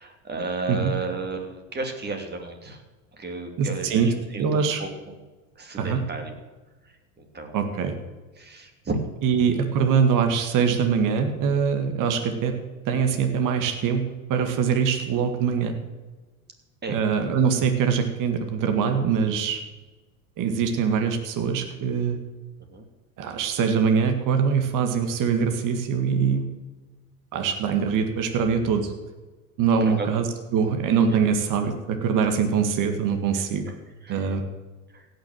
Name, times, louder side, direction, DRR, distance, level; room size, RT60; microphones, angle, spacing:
voice 1, 0.0-2.8 3.1-5.1 5.6-6.3 6.8-7.7 8.4-9.0 16.8-17.0 22.7-22.8 29.8-30.1 31.1-31.2 33.3-33.4 34.0-34.3 34.9-35.1, right 3 dB, 25° right, 4 dB, 2.9 m, -33 dB
voice 2, 3.6-4.1 4.4-4.8 5.8-6.0 7.5-8.0 9.2-12.5 12.9-14.0 14.3-15.7 16.9-19.6 20.4-22.2 23.2-26.5 27.3-28.9 29.6-30.3 30.5-33.7 34.1-34.4, right 6 dB, 50° right, 5 dB, 2.0 m, -23 dB
16.5 x 6.5 x 7.4 m, 1.2 s
hypercardioid pair, 90°, 42 cm